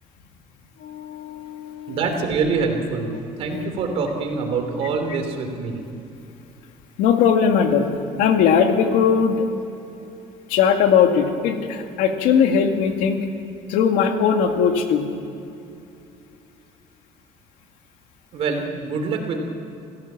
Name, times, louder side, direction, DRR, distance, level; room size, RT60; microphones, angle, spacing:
voice 1, 0.8-2.0 3.5-3.7 7.0-7.9 8.2-9.5 10.5-13.3 13.7-15.1, left 7 dB, 90° left, 5 dB, 2.2 m, -19 dB
voice 2, 1.9-5.8 18.3-19.4, right 4 dB, 45° right, 4 dB, 3.2 m, -25 dB
27.0 x 16.0 x 7.5 m, 2.7 s
cardioid pair, 180°, 14 cm